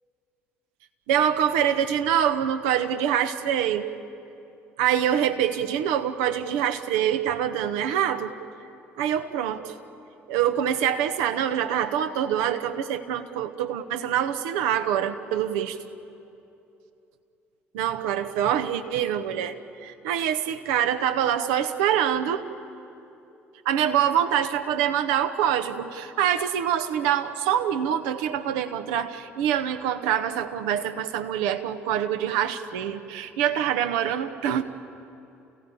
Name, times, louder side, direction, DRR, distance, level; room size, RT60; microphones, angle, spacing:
voice 1, 1.1-3.8 4.8-8.3 9.0-9.7 10.3-15.8 17.7-19.6 19.8-22.4 23.6-34.6, right 9 dB, 65° right, 9 dB, 1.2 m, -25 dB
29.0 x 16.5 x 8.6 m, 2.8 s
figure-of-eight pair, 55°, 7 cm